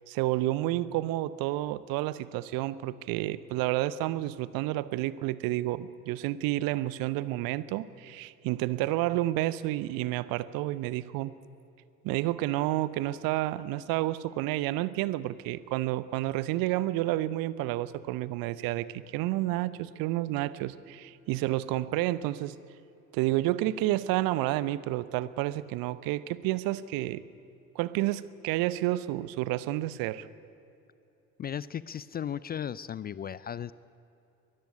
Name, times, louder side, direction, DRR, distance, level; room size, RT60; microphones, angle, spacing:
voice 1, 0.1-11.4 12.0-22.6 23.1-27.2 27.7-30.3, right 16 dB, 55° right, 18 dB, 0.9 m, -30 dB
voice 2, 31.4-33.7, left 9 dB, 25° left, 19 dB, 0.4 m, -36 dB
22.5 x 14.5 x 9.6 m, 2.8 s
figure-of-eight pair, 60°, 41 cm